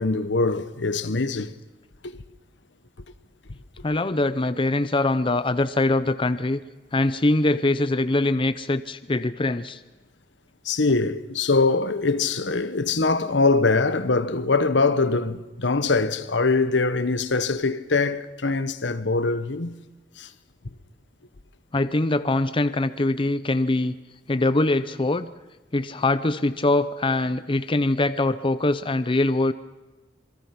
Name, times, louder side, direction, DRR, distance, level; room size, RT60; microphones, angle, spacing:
voice 1, 0.0-1.5 2.0-2.2 10.6-19.8 20.2-20.3, left 3 dB, 80° left, 1.2 m, -23 dB
voice 2, 3.8-6.6 6.9-9.8 10.9-11.0 21.7-23.9 24.3-25.3 25.7-29.5, left 2 dB, 30° left, 0.7 m, -23 dB
27.0 x 22.5 x 6.0 m
head